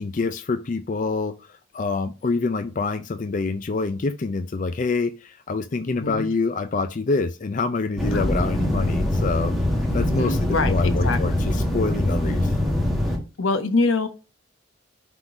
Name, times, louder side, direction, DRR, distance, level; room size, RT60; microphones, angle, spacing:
voice 1, 0.0-9.5 9.9-12.5, left 3 dB, 40° left, 10 dB, 0.4 m, -26 dB
voice 2, 5.9-6.2 8.1-8.4 10.0-11.2 13.4-14.1, left 3 dB, 85° left, 9 dB, 1.0 m, -25 dB
sound 1, 8.0-13.2, left 1 dB, ahead, 1.5 m, -23 dB
5.9 x 3.8 x 5.0 m, 0.30 s
head